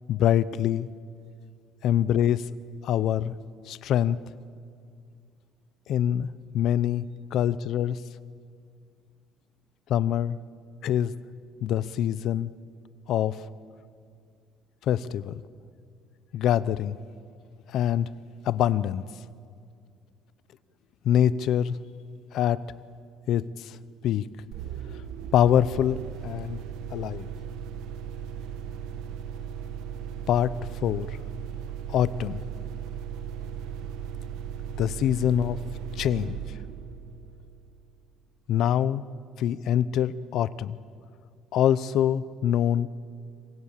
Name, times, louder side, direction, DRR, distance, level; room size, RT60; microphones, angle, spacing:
voice 1, 0.1-0.9 1.8-2.4 2.8-3.3 3.7-4.2 5.9-6.3 6.5-8.0 9.9-10.4 10.8-11.1 11.6-12.5 13.1-13.4 14.9-15.4 16.3-17.0 17.7-18.1 18.4-19.0 21.0-21.8 22.3-22.6 23.3-23.8 24.0-24.3 25.3-26.6 26.9-27.3 30.3-30.5 30.8-31.1 31.9-32.4 34.8-35.6 36.0-36.4 38.5-39.0 39.4-40.8 41.5-42.9, left 10 dB, 50° left, 17 dB, 0.7 m, -24 dB
sound 1, 24.5-38.0, right 8 dB, 80° right, 1.5 m, -37 dB
27.0 x 25.5 x 7.4 m, 2.2 s
cardioid pair, 180°, 0 cm